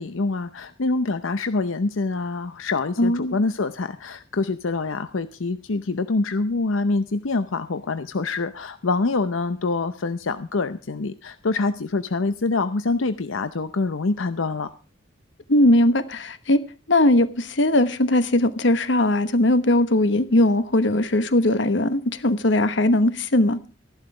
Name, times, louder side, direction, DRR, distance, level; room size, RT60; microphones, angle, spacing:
voice 1, 0.0-14.7, left 3 dB, 85° left, 0.7 m, -25 dB
voice 2, 3.0-3.4 15.5-16.6 16.9-23.6, left 1 dB, 65° left, 1.2 m, -19 dB
14.5 x 11.5 x 4.9 m
head